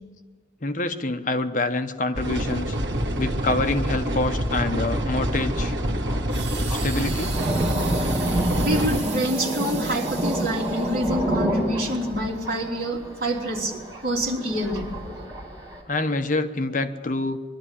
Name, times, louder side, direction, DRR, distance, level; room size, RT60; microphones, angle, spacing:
voice 1, 0.6-2.8 3.2-5.7 6.7-7.4 15.9-17.4, left 2 dB, 45° left, 8 dB, 0.9 m, -26 dB
sound 1, 2.2-9.0, equal, 90° right, 1.5 m, -26 dB
Thunder, 4.5-15.8, right 1 dB, 25° right, 3.8 m, -30 dB
sound 2, 6.3-11.2 11.9-12.1, right 6 dB, 70° right, 2.1 m, -37 dB
voice 2, 8.6-14.9, equal, 55° right, -2 dB, 3.4 m, -27 dB
21.5 x 12.5 x 9.9 m, 1.5 s
head